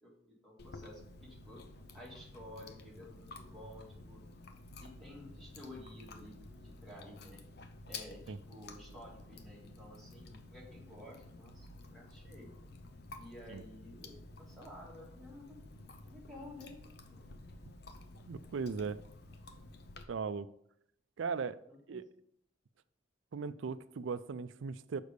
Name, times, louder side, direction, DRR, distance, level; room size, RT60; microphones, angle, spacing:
voice 1, 0.0-1.6 1.9-4.2 4.8-7.4 7.9-12.5 13.2-15.6 16.1-16.8 17.1-17.2 21.7-22.0, left 1 dB, ahead, 2.3 m, -52 dB
Chewing mastication, 0.6-20.0, left 2 dB, 55° left, 0.6 m, -52 dB
voice 2, 18.3-19.0 20.1-20.5 21.2-21.6 21.9-22.1 23.3-25.0, right 5 dB, 75° right, 0.4 m, -38 dB
6.5 x 5.2 x 5.1 m
head